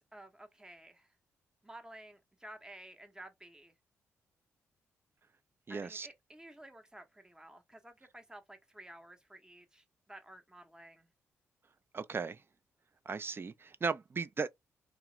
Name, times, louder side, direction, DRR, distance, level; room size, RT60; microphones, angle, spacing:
voice 1, 0.1-1.1 1.6-3.7 5.7-11.1, right 1 dB, 10° right, 0.8 m, -53 dB
voice 2, 5.7-6.1 11.9-12.4 13.1-14.5, right 4 dB, 30° right, 0.3 m, -36 dB
2.3 x 2.0 x 3.0 m
hypercardioid pair, 40°, 7 cm